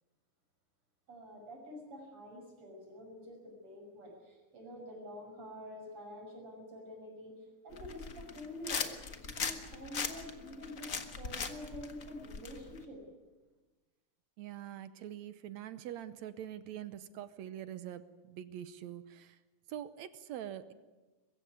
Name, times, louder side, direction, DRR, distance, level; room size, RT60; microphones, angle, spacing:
voice 1, 1.1-7.4 7.6-8.9 9.2-13.0, left 1 dB, 45° right, 1 dB, 6.9 m, -47 dB
sound 1, 7.7-12.8, left 5 dB, 40° left, 1.2 m, -39 dB
voice 2, 14.4-19.4 19.7-20.7, right 11 dB, 75° right, 13 dB, 2.0 m, -44 dB
22.5 x 15.5 x 9.7 m, 1.2 s
omnidirectional pair, 3.5 m